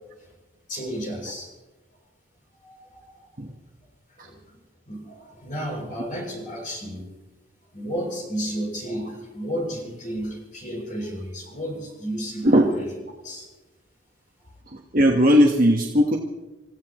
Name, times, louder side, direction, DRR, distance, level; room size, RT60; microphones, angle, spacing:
voice 1, 0.7-1.5 2.6-3.2 4.2-4.6 4.9-7.1 7.7-12.9 13.2-13.5, equal, 40° left, -1 dB, 6.8 m, -32 dB
voice 2, 14.7-16.2, equal, 45° right, 0 dB, 1.3 m, -18 dB
29.0 x 16.0 x 3.1 m, 1.1 s
head